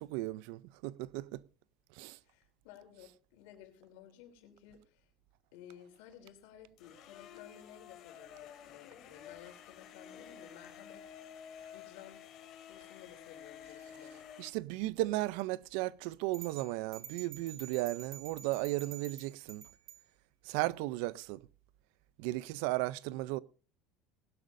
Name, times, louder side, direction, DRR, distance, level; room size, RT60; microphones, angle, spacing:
voice 1, 0.0-1.4 1.9-2.2 14.4-19.7 20.4-21.4 22.2-23.4, right 18 dB, 70° right, 0.5 m, -35 dB
voice 2, 2.2-5.1 5.5-12.2 12.6-14.2, left 10 dB, 85° left, 3.3 m, -55 dB
sound 1, 6.8-14.5, left 9 dB, 45° left, 2.7 m, -52 dB
sound 2, 16.3-20.0, right 10 dB, 40° right, 1.8 m, -49 dB
20.0 x 11.5 x 2.6 m
cardioid pair, 160°, 0 cm